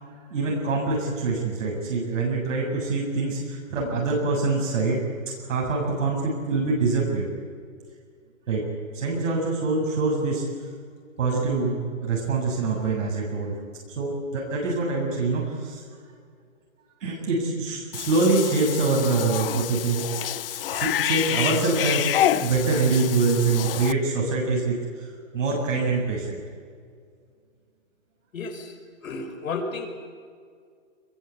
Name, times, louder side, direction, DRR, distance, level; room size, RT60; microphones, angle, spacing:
voice 1, 0.3-5.0 5.4-7.3 8.5-8.7 8.9-10.4 11.2-13.6 14.0-15.8 17.0-20.0 20.5-22.1 22.4-25.1 25.3-26.4, right 3 dB, 65° right, -2 dB, 7.8 m, -25 dB
Cat / Bathtub (filling or washing), 17.9-23.9, left 11 dB, 45° left, 0.6 m, -28 dB
voice 2, 28.3-29.9, left 4 dB, 80° left, 4 dB, 5.5 m, -33 dB
24.5 x 22.5 x 8.6 m, 2.1 s
hypercardioid pair, 160°, 40 cm